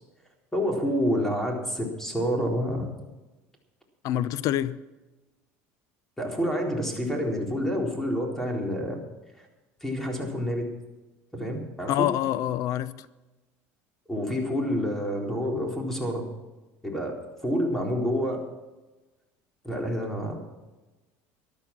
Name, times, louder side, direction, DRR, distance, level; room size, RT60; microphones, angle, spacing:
voice 1, 0.5-2.9 6.2-9.0 9.8-10.7 11.3-12.1 14.1-16.2 16.8-18.4 19.6-20.4, equal, 5° left, 4.1 m, -28 dB
voice 2, 4.0-4.8 11.9-13.1, left 12 dB, 60° left, 0.7 m, -26 dB
13.5 x 11.5 x 6.1 m
supercardioid pair, 110°, 7 cm